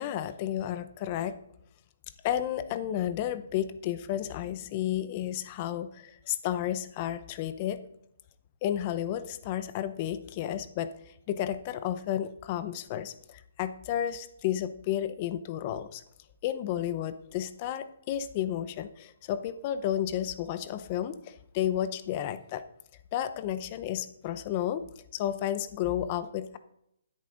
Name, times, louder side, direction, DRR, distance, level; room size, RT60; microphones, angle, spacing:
voice 1, 0.0-1.4 2.2-7.8 8.6-16.0 16.4-22.6 23.1-24.8 25.1-26.6, left 11 dB, 25° left, 12 dB, 0.6 m, -32 dB
12.5 x 10.0 x 3.9 m, 0.75 s
hypercardioid pair, 165°, 0 cm